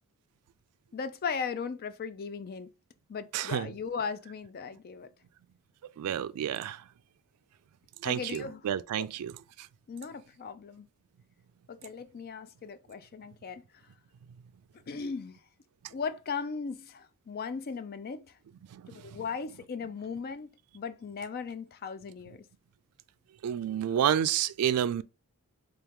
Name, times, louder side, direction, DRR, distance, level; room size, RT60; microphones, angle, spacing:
voice 1, 0.9-2.7 3.1-5.1 8.0-8.6 9.0-9.1 9.9-10.9 11.7-13.6 14.9-15.4 15.9-18.3 18.9-20.5 20.7-22.4, left 5 dB, 45° left, 0.4 m, -37 dB
voice 2, 3.3-3.7 6.0-6.8 8.0-9.3 18.7-18.8 23.4-25.0, right 10 dB, 85° right, 0.3 m, -29 dB
3.8 x 2.9 x 3.5 m
head